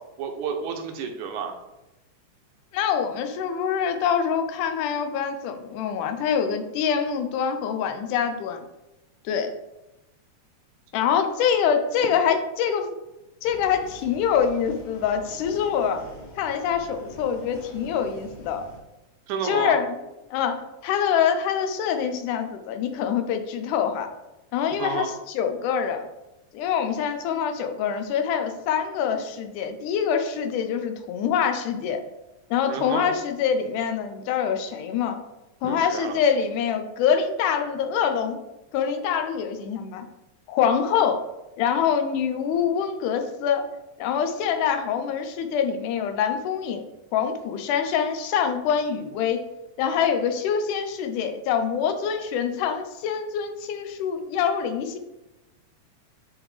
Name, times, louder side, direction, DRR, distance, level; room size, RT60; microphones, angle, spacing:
voice 1, 0.2-1.5 19.3-19.7 24.8-25.1 32.7-33.1 35.6-36.2, right 6 dB, 80° right, 4 dB, 2.1 m, -30 dB
voice 2, 2.7-8.6 9.3-9.5 10.9-12.9 13.4-16.0 16.4-18.6 19.4-20.0 20.3-24.1 24.5-26.1 26.5-32.0 32.5-35.2 35.6-38.4 38.7-40.1 40.5-41.3 41.6-43.6 44.0-49.4 49.8-55.0, left 7 dB, 85° left, 7 dB, 2.2 m, -25 dB
sound 1, 13.4-18.8, equal, 60° left, 1.0 m, -44 dB
9.3 x 3.6 x 3.2 m, 0.97 s
omnidirectional pair, 3.5 m